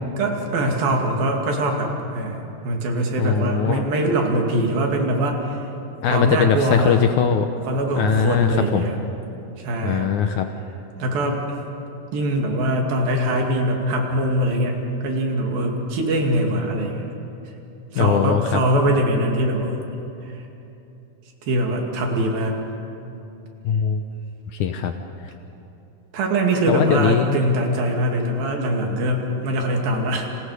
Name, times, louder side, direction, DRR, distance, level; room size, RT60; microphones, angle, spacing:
voice 1, 0.2-5.6 6.1-7.0 7.7-9.0 9.6-10.1 11.0-11.4 12.1-14.8 15.0-17.1 17.9-19.8 20.2-20.3 21.4-22.5 26.1-30.3, right 1 dB, 75° right, 1 dB, 4.2 m, -22 dB
voice 2, 3.2-3.8 6.0-7.5 8.0-8.9 9.8-10.5 18.0-18.6 23.6-24.0 24.5-24.9 26.7-27.4, left 8 dB, 70° left, 6 dB, 2.0 m, -20 dB
29.5 x 27.5 x 5.0 m, 2.9 s
omnidirectional pair, 4.2 m